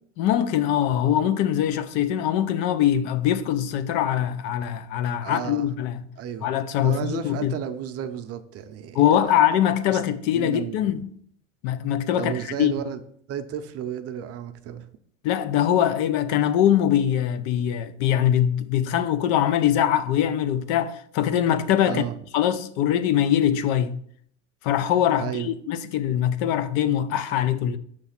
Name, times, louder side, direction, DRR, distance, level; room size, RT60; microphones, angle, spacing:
voice 1, 0.2-6.1 6.4-7.5 8.9-11.0 11.6-12.7 15.2-22.0 22.3-24.0 24.6-27.8, left 10 dB, 65° left, 0.6 m, -22 dB
voice 2, 5.2-5.7 6.2-6.5 6.8-9.4 9.9-10.0 10.3-10.8 12.2-13.0 13.3-14.9 21.9-22.2 25.2-25.5, right 9 dB, 40° right, 0.6 m, -33 dB
5.9 x 3.2 x 5.8 m
supercardioid pair, 120°, 37 cm